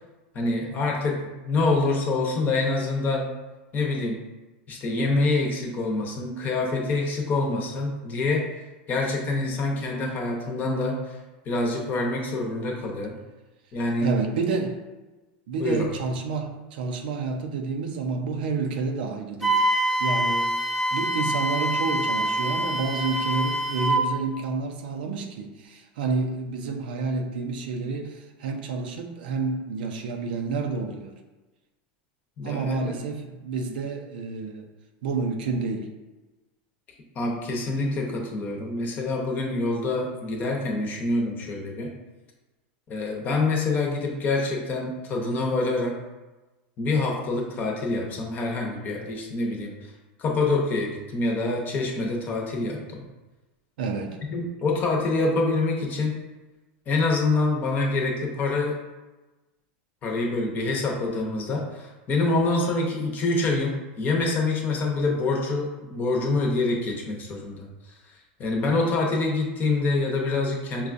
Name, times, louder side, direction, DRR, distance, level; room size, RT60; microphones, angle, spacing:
voice 1, 0.3-3.3 3.7-4.2 4.7-8.5 8.9-11.2 11.4-13.2 13.7-14.1 15.5-15.9 32.4-32.8 37.1-41.9 42.9-45.9 46.8-49.8 50.2-53.0 54.3-56.2 56.9-58.8 60.0-67.7 68.4-70.9, left 3 dB, 35° left, 0 dB, 0.8 m, -26 dB
voice 2, 14.0-14.8 15.5-20.5 20.9-31.1 32.4-34.7 35.0-35.9 53.8-54.3, right 4 dB, 80° right, 4 dB, 0.5 m, -29 dB
Wind instrument woodwind instrument, 19.4-24.1, right 1 dB, ahead, 0.6 m, -25 dB
5.3 x 2.3 x 2.5 m, 1.1 s
supercardioid pair, 120°, 5 cm